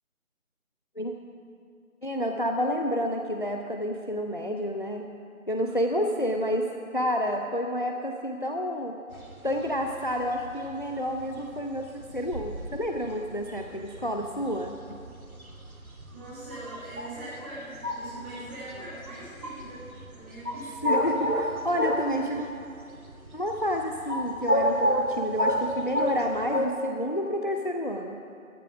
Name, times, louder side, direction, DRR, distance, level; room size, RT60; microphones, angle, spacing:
voice 1, 2.0-5.1 5.5-9.0 9.4-14.7 20.8-22.5 23.3-28.2, equal, 35° left, 3 dB, 0.6 m, -29 dB
sound 1, 9.1-22.6 22.9-26.7, equal, 85° right, 1.6 m, -30 dB
voice 2, 16.1-20.9, right 1 dB, 10° right, -10 dB, 2.2 m, -42 dB
13.5 x 10.5 x 6.0 m, 2.5 s
figure-of-eight pair, 160°, 42 cm